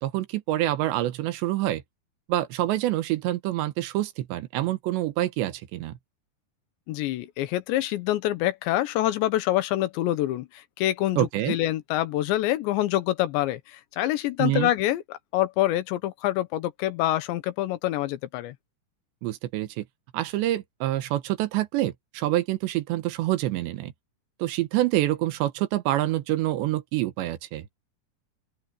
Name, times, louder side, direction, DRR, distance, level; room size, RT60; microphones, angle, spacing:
voice 1, 0.0-1.8 2.3-6.0 11.2-11.6 14.4-14.7 19.2-19.9 20.1-23.9 24.4-27.7, right 15 dB, 85° right, 3.4 m, -26 dB
voice 2, 6.9-18.6, left 14 dB, 90° left, 3.4 m, -26 dB
open air
omnidirectional pair, 5.0 m